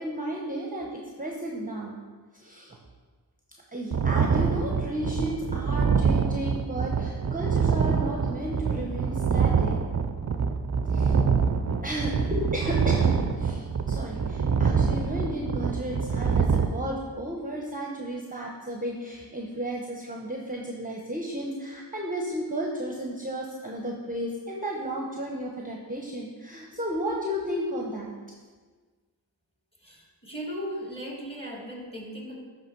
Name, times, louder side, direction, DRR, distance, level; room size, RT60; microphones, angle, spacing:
voice 1, 0.0-2.0 2.3-2.8 3.7-9.8 10.9-11.2 11.8-28.1, right 1 dB, 20° right, -1 dB, 0.8 m, -33 dB
sound 1, 3.9-16.7, right 6 dB, 40° right, 0.5 m, -25 dB
voice 2, 29.8-32.4, equal, 15° left, -3 dB, 2.2 m, -37 dB
9.9 x 3.3 x 4.5 m, 1.4 s
cardioid pair, 45°, 42 cm